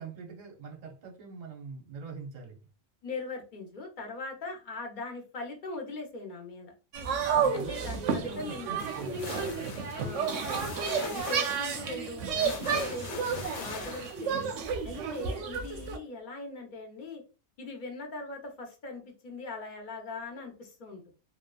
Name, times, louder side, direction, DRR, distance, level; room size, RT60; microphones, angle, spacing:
voice 1, 0.0-2.6 7.3-9.3, right 5 dB, 45° right, 0.7 m, -43 dB
voice 2, 3.0-6.7 7.4-9.1 9.9-10.4 11.0-14.5 14.8-17.2 17.6-21.1, left 2 dB, 50° left, 0.7 m, -40 dB
sound 1, 6.9-16.0, right 6 dB, 90° right, 0.9 m, -31 dB
sound 2, 8.8-14.4, left 5 dB, 80° left, 1.0 m, -41 dB
2.8 x 2.2 x 2.2 m
omnidirectional pair, 1.2 m